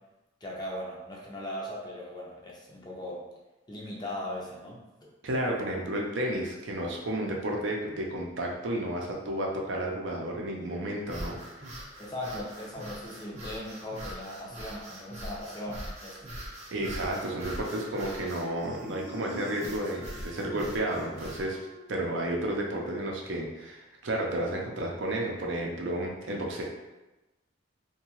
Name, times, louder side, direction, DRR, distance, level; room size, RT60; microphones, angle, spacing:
voice 1, 0.4-3.2 3.7-5.1 12.0-16.3, left 1 dB, 20° left, -3 dB, 0.5 m, -39 dB
voice 2, 5.2-11.8 16.7-21.6 21.9-26.6, right 1 dB, 70° right, -1 dB, 0.5 m, -32 dB
sound 1, 11.0-21.5, equal, 35° right, 0.7 m, -42 dB
Wind instrument woodwind instrument, 17.4-22.1, right 3 dB, 80° left, 0.7 m, -50 dB
2.7 x 2.2 x 2.9 m, 1.0 s
head